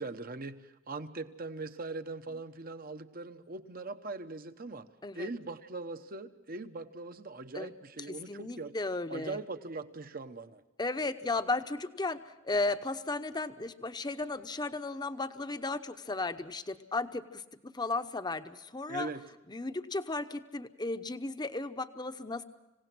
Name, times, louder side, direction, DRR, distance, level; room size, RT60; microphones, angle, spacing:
voice 1, 0.0-4.9 5.1-8.7 9.1-10.6 18.9-19.2, right 3 dB, 50° right, 10 dB, 1.1 m, -41 dB
voice 2, 8.3-9.4 10.8-19.1 19.5-22.4, left 3 dB, 20° left, 9 dB, 0.8 m, -35 dB
27.0 x 17.0 x 6.1 m, 1.0 s
head